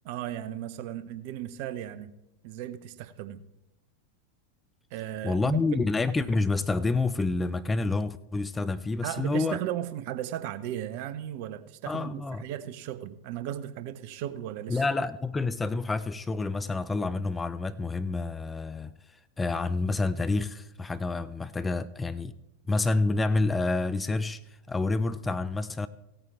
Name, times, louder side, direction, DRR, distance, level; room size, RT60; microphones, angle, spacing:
voice 1, 0.0-2.1 2.4-3.4 4.9-5.6 9.0-14.8, right 11 dB, 45° right, 0.6 m, -36 dB
voice 2, 5.2-9.6 11.9-12.4 14.7-18.9 19.4-22.3 22.7-24.4 24.7-25.9, left 3 dB, 10° left, 0.4 m, -28 dB
16.5 x 8.9 x 3.5 m
figure-of-eight pair, 90°, 0 cm